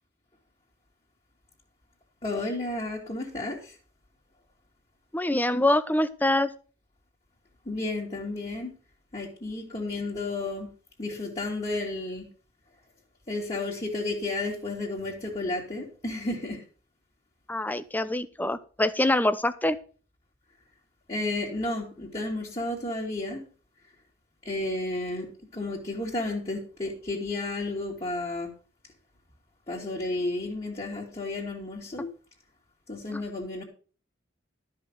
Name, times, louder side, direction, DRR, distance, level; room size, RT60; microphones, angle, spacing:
voice 1, 2.2-3.7 7.7-8.7 9.1-10.7 11.0-12.3 13.3-16.6 21.1-23.4 24.4-28.5 29.7-32.1 32.9-33.6, left 2 dB, 30° left, -4 dB, 2.5 m, -32 dB
voice 2, 5.1-6.5 17.5-19.8 33.1-33.2, left 1 dB, 10° left, 13 dB, 0.7 m, -25 dB
13.0 x 5.8 x 6.6 m, 0.37 s
head